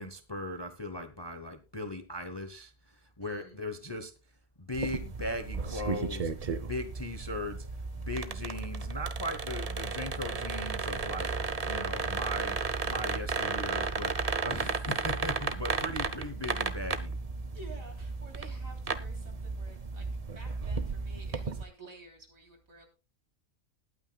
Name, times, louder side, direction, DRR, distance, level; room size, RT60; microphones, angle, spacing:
voice 1, 0.0-4.1 4.6-6.3 6.7-7.7 7.9-11.4 11.7-12.6 12.8-14.2 14.4-17.2, left 1 dB, 20° left, 8 dB, 0.8 m, -38 dB
voice 2, 3.2-3.6 17.5-20.1 20.3-22.9, right 2 dB, 70° right, 2 dB, 3.7 m, -51 dB
sound 1, 4.7-21.6, right 4 dB, 35° right, 0.7 m, -34 dB
20.5 x 9.1 x 2.3 m, 0.31 s
omnidirectional pair, 1.5 m